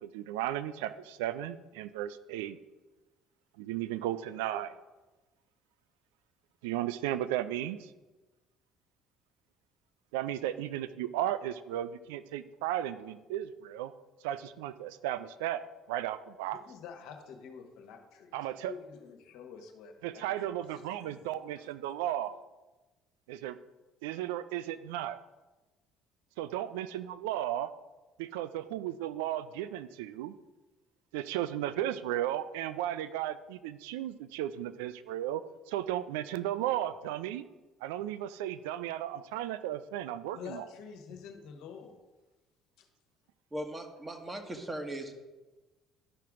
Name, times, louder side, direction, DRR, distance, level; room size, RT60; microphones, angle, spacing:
voice 1, 0.0-2.6 3.6-4.7 6.6-7.9 10.1-13.9 14.2-15.6 15.9-16.6 18.3-18.7 20.0-22.4 23.3-23.6 24.0-25.2 26.4-27.7 28.2-30.3 31.1-37.4 37.8-40.6, right 12 dB, 75° right, 14 dB, 0.4 m, -35 dB
voice 2, 16.5-21.2 40.3-42.0 42.8-42.9, left 6 dB, 65° left, 4 dB, 1.3 m, -48 dB
voice 3, 43.5-45.1, right 1 dB, 20° right, 4 dB, 1.5 m, -38 dB
11.5 x 5.8 x 3.6 m, 1.1 s
hypercardioid pair, 55°, 0 cm